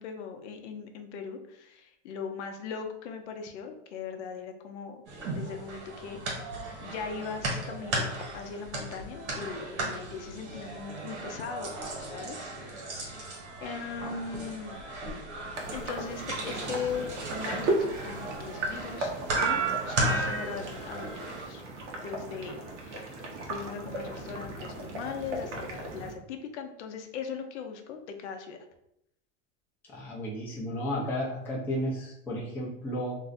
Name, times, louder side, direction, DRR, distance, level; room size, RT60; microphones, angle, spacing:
voice 1, 0.0-5.0 5.3-6.2 6.5-13.2 13.6-14.8 15.7-21.6 22.0-23.1 23.5-28.6, left 6 dB, 70° left, 5 dB, 0.6 m, -39 dB
sound 1, 5.1-21.5, right 2 dB, 70° right, 1.4 m, -35 dB
sound 2, 15.5-26.1, right 2 dB, 85° right, 0.9 m, -36 dB
voice 2, 29.9-33.2, equal, 5° left, -5 dB, 0.4 m, -33 dB
2.6 x 2.0 x 3.9 m, 0.78 s
supercardioid pair, 150°, 35 cm